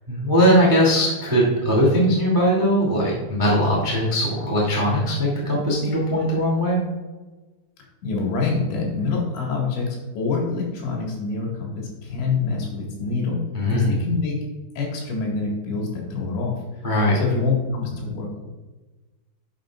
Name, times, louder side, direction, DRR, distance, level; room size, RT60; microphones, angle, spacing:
voice 1, 0.1-6.8 13.5-13.9 16.8-17.2, equal, 15° right, -5 dB, 0.8 m, -20 dB
voice 2, 8.0-14.3 14.8-16.6 17.1-18.5, left 4 dB, 80° left, -2 dB, 4.2 m, -26 dB
11.5 x 7.0 x 2.5 m, 1.2 s
omnidirectional pair, 5.1 m